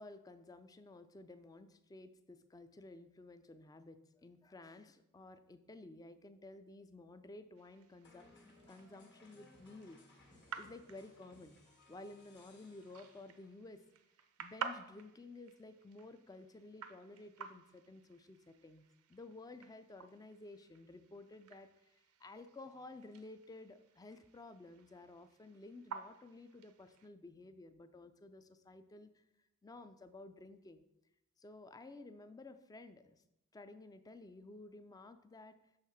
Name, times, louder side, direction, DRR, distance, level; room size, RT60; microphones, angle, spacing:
voice 1, 0.0-8.3 8.7-10.0 10.6-11.6 11.9-13.8 14.4-18.8 19.1-21.9 22.2-29.2 29.6-30.8 31.4-33.2 33.5-35.5, left 2 dB, 15° left, 11 dB, 0.3 m, -54 dB
sound 1, 7.6-27.1, right 6 dB, 80° right, 0.5 m, -52 dB
sound 2, 8.0-13.7, left 2 dB, 50° left, 1.5 m, -64 dB
6.5 x 3.5 x 5.7 m, 0.84 s
head